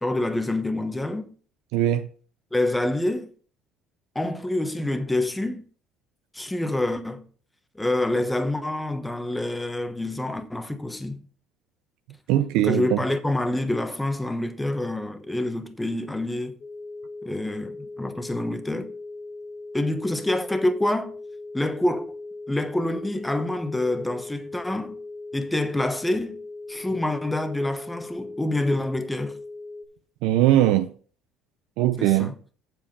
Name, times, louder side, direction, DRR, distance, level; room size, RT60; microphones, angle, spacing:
voice 1, 0.0-1.3 2.5-3.3 4.1-5.6 6.3-7.2 7.7-11.2 12.6-16.6 17.2-18.9 19.7-21.1 21.5-22.1 22.5-25.0 25.3-26.4 26.7-29.4 32.0-32.3, left 1 dB, 10° left, 1.2 m, -27 dB
voice 2, 1.7-2.1 12.3-13.0 30.2-30.9 31.8-32.3, right 13 dB, 85° right, 0.5 m, -20 dB
sound 1, 16.6-29.9, left 2 dB, 40° left, 2.4 m, -39 dB
7.6 x 7.3 x 5.4 m
cardioid pair, 115°, 0 cm